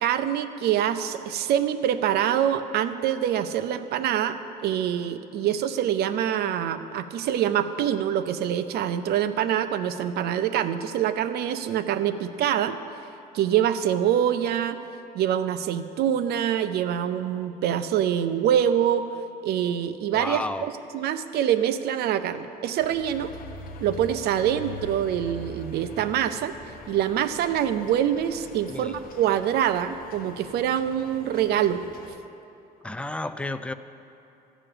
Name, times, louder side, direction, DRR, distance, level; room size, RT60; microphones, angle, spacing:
voice 1, 0.0-4.4 4.6-12.8 13.3-14.8 15.1-19.1 19.4-20.5 20.9-23.3 23.8-26.6 26.9-31.8, right 10 dB, 70° right, 11 dB, 0.6 m, -25 dB
voice 2, 20.1-20.7 28.7-29.0 32.8-33.7, left 2 dB, 5° left, 11 dB, 0.4 m, -32 dB
sound 1, 22.8-32.2, left 3 dB, 60° left, 0.9 m, -43 dB
14.0 x 5.0 x 8.7 m, 2.8 s
cardioid pair, 110°, 17 cm